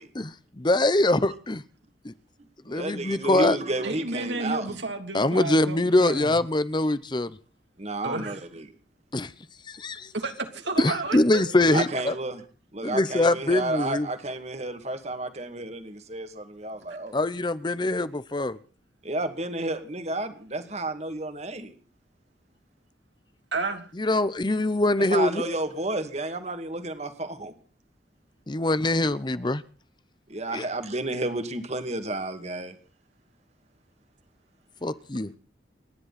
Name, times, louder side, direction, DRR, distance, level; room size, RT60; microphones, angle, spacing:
voice 1, 0.1-1.6 2.0-2.1 2.7-3.6 5.1-7.4 9.1-9.3 9.7-10.1 10.8-12.1 12.8-14.1 17.1-18.6 24.0-25.6 28.5-29.6 30.5-30.7 34.8-35.3, left 2 dB, 25° left, 0.8 m, -24 dB
voice 2, 2.7-4.8 7.8-8.7 11.7-12.4 12.7-17.2 19.0-21.7 25.1-27.5 30.3-32.7, right 2 dB, 35° right, 2.2 m, -31 dB
voice 3, 3.8-6.3 8.0-8.4 10.1-11.4 11.7-11.8 23.5-23.9, right 3 dB, 80° right, 3.1 m, -31 dB
29.0 x 11.0 x 4.2 m
head